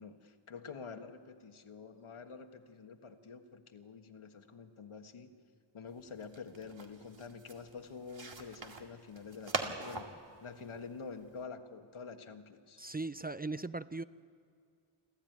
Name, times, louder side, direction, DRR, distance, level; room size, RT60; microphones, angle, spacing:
voice 1, 0.0-5.3 5.7-10.1 10.4-12.8, left 5 dB, 85° left, 6 dB, 1.6 m, -48 dB
sound 1, 5.9-11.4, right 3 dB, 65° right, 2.2 m, -43 dB
voice 2, 12.8-14.0, right 3 dB, 20° right, 14 dB, 0.4 m, -38 dB
27.5 x 13.5 x 9.3 m, 2.3 s
wide cardioid pair, 70°, 48 cm